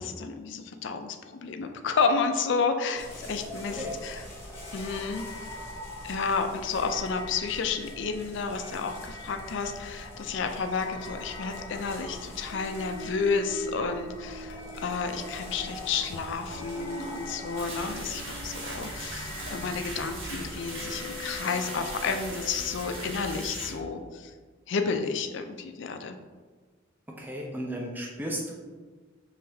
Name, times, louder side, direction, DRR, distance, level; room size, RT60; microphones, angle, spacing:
voice 1, 0.0-4.2 4.7-5.2 6.0-24.3 24.7-26.2, left 5 dB, 60° left, 6 dB, 0.4 m, -31 dB
sound 1, 3.0-21.4, left 1 dB, 15° left, 1.0 m, -43 dB
sound 2, 4.5-23.1, left 1 dB, 80° left, 0.8 m, -45 dB
sound 3, 17.6-23.7, right 1 dB, 70° right, 1.3 m, -39 dB
voice 2, 27.1-28.5, equal, 10° right, -1 dB, 0.5 m, -35 dB
5.6 x 3.2 x 2.7 m, 1.4 s
head